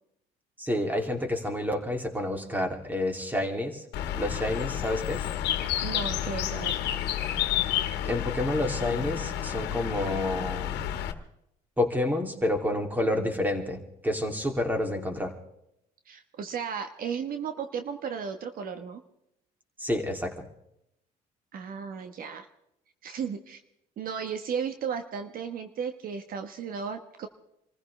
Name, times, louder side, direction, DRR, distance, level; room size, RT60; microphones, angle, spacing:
voice 1, 0.6-3.8 4.2-5.2 8.0-10.9 11.8-15.3 19.8-20.5, left 1 dB, 10° right, 3 dB, 2.9 m, -29 dB
Bird, 3.9-11.1, left 11 dB, 85° left, 1.5 m, -30 dB
voice 2, 5.8-6.8 16.1-19.0 21.5-22.5 23.0-23.6 24.0-27.3, right 6 dB, 60° right, 7 dB, 1.4 m, -34 dB
27.0 x 15.5 x 3.3 m, 0.79 s
cardioid pair, 110°, 17 cm